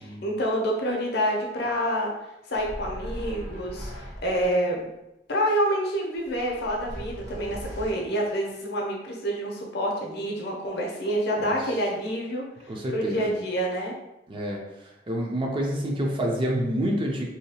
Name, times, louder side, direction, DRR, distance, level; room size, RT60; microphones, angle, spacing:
voice 1, 0.0-2.1 2.5-4.9 5.3-12.5 12.9-13.9, equal, 60° left, 0 dB, 0.6 m, -27 dB
sound 1, 2.5-4.6 6.2-7.9, equal, 80° right, 0.8 m, -38 dB
voice 2, 12.7-13.2 14.3-14.6 15.1-17.3, equal, 30° right, 0 dB, 0.4 m, -27 dB
2.7 x 2.2 x 2.7 m, 0.94 s
head